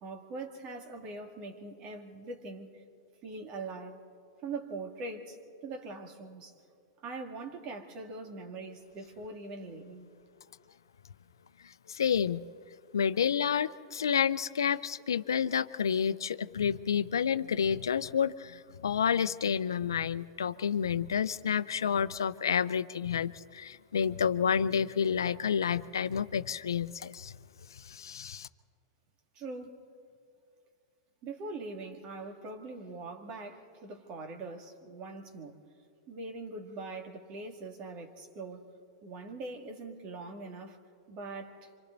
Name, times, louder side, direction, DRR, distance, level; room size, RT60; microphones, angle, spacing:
voice 1, 0.0-2.8 3.2-4.0 4.4-5.4 5.6-6.5 7.0-10.1 29.3-29.8 31.2-35.6 36.1-38.7 39.0-40.8 41.1-41.7, right 3 dB, 40° right, 2.5 m, -42 dB
voice 2, 11.6-12.4 12.9-27.3 27.7-28.5, left 7 dB, 85° left, 0.5 m, -30 dB
27.0 x 25.5 x 4.0 m
hypercardioid pair, 110°, 2 cm